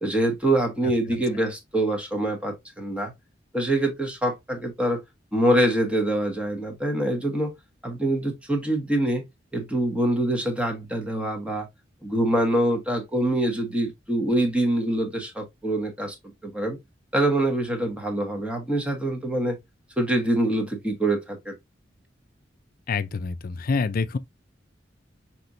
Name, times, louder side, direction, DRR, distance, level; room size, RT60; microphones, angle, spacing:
voice 1, 0.0-3.1 3.5-5.0 5.3-7.5 7.8-9.2 9.5-11.7 12.0-16.2 16.4-16.8 17.1-19.6 20.0-21.6, right 1 dB, 5° right, 1.1 m, -25 dB
voice 2, 22.9-24.2, left 4 dB, 50° left, 0.4 m, -26 dB
5.8 x 3.0 x 2.6 m
head